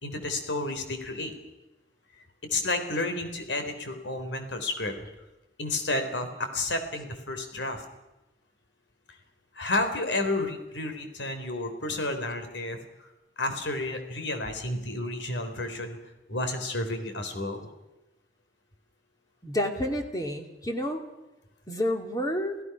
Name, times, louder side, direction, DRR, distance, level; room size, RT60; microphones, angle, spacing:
voice 1, 0.0-1.3 2.5-5.0 5.6-7.8 9.5-12.8 13.4-16.0 16.3-17.7, left 2 dB, 85° left, 7 dB, 3.6 m, -31 dB
voice 2, 19.4-21.0 21.7-22.6, left 1 dB, 20° left, 4 dB, 2.5 m, -29 dB
28.5 x 16.5 x 6.0 m, 1.0 s
head